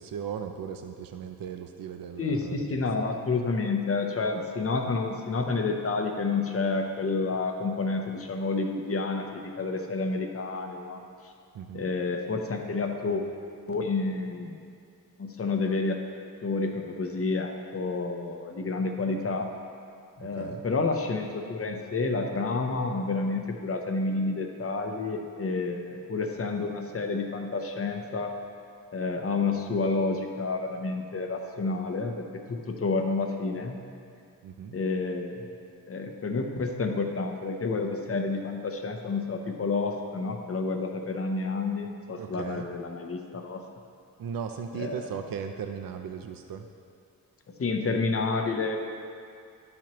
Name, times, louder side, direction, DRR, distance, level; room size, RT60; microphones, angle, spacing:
voice 1, 0.0-2.9 11.5-11.8 20.2-20.6 34.4-34.8 42.2-42.7 44.2-46.7, right 7 dB, 75° right, 6 dB, 0.5 m, -37 dB
voice 2, 2.2-11.0 11.7-13.2 13.7-14.6 15.2-16.0 16.4-19.5 20.2-28.3 28.9-33.8 34.7-35.4 35.9-43.6 44.7-45.1 47.6-48.8, left 3 dB, 40° left, 4 dB, 0.7 m, -29 dB
12.0 x 7.4 x 3.0 m, 2.4 s
wide cardioid pair, 175°, 35 cm